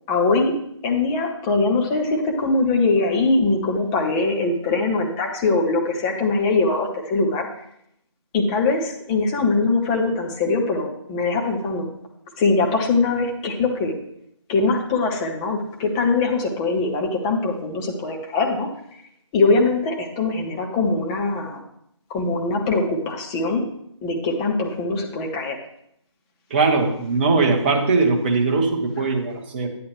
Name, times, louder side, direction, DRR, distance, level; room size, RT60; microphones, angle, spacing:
voice 1, 0.1-0.5 0.8-7.5 8.3-11.9 12.4-13.9 14.5-18.7 19.3-21.6 22.1-23.7 24.0-25.6, left 3 dB, 10° left, 1 dB, 0.6 m, -22 dB
voice 2, 26.5-29.7, right 3 dB, 20° right, 2 dB, 1.0 m, -20 dB
10.0 x 8.4 x 3.1 m, 0.74 s
figure-of-eight pair, 150°, 16 cm